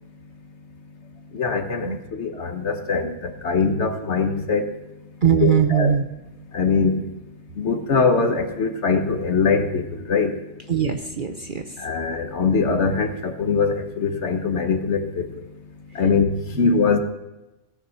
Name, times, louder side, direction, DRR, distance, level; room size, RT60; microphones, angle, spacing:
voice 1, 1.3-4.7 5.4-5.9 6.5-7.0 7.6-10.4 11.8-15.2 15.9-17.0, left 4 dB, 55° left, 6 dB, 1.4 m, -22 dB
voice 2, 5.2-6.1 10.7-11.8 16.5-16.7, right 8 dB, 45° right, 6 dB, 0.8 m, -21 dB
17.5 x 6.9 x 5.8 m, 0.99 s
omnidirectional pair, 1.4 m